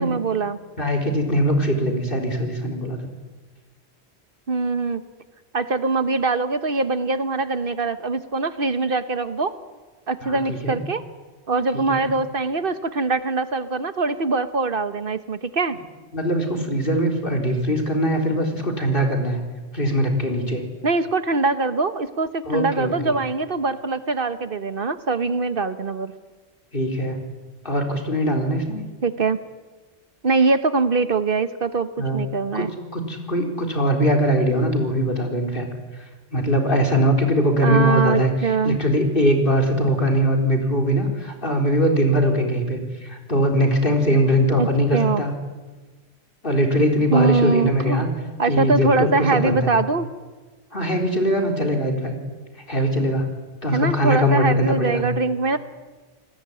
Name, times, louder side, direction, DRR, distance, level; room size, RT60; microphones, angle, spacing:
voice 1, 0.0-0.6 4.5-5.0 5.5-9.5 10.1-11.0 11.5-15.8 20.8-26.1 29.0-29.4 30.2-31.9 32.1-32.7 37.6-38.8 44.6-44.7 44.9-45.2 47.1-48.0 48.4-50.1 53.7-55.6, right 3 dB, 55° right, 11 dB, 1.3 m, -22 dB
voice 2, 0.8-3.0 10.2-10.8 11.9-12.1 16.1-19.4 19.7-20.6 22.5-23.1 26.7-27.2 27.6-28.8 32.0-32.2 32.5-32.7 32.9-35.7 36.3-38.3 38.6-45.3 46.4-48.1 48.5-49.7 50.7-52.1 52.7-53.3 53.6-55.0, equal, 55° left, 3 dB, 4.4 m, -21 dB
29.0 x 20.0 x 9.8 m, 1.3 s
omnidirectional pair, 1.1 m